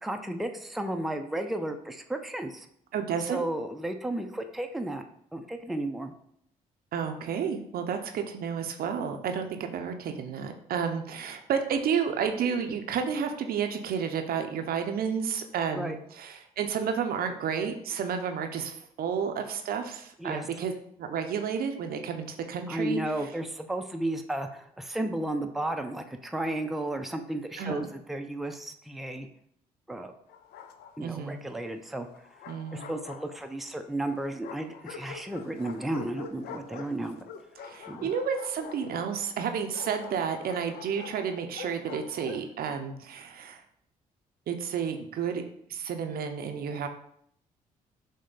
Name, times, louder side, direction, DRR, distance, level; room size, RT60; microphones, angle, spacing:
voice 1, 0.0-2.7 3.3-5.0 5.3-6.1 15.7-16.0 20.2-20.4 22.7-29.3 29.9-30.1 31.0-32.1 32.7-37.2 37.9-38.1, right 1 dB, ahead, 5 dB, 0.5 m, -33 dB
voice 2, 2.9-3.4 6.9-20.7 21.0-23.0 27.6-27.9 31.0-31.4 32.5-32.9 37.6-43.6 44.5-45.4 45.7-46.9, right 7 dB, 60° right, 6 dB, 0.6 m, -31 dB
Bark, 30.3-31.2 32.1-33.7 34.4-42.5, left 6 dB, 60° left, 0.5 m, -46 dB
6.1 x 2.1 x 3.9 m, 0.68 s
hypercardioid pair, 45°, 18 cm